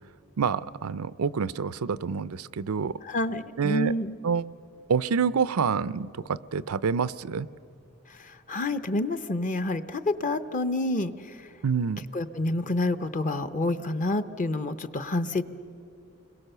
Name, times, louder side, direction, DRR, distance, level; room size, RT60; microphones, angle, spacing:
voice 1, 0.4-3.0 3.6-3.9 4.2-4.5 4.9-7.5 11.6-12.1, right 6 dB, 85° right, 16 dB, 0.5 m, -27 dB
voice 2, 3.0-4.2 8.1-11.5 12.1-15.4, left 2 dB, 35° left, 11 dB, 0.6 m, -28 dB
29.5 x 22.0 x 6.8 m, 2.7 s
head